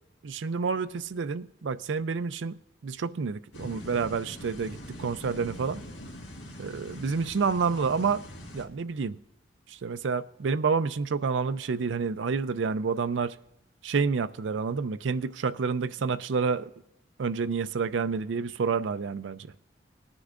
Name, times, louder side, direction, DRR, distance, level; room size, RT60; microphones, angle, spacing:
voice 1, 0.2-2.6 2.8-5.8 6.6-8.2 8.5-9.2 9.7-13.4 13.8-16.7 17.2-19.5, right 5 dB, 85° right, 0.4 m, -29 dB
sound 1, 3.5-8.7, equal, 90° left, 1.9 m, -43 dB
19.0 x 9.8 x 2.5 m
head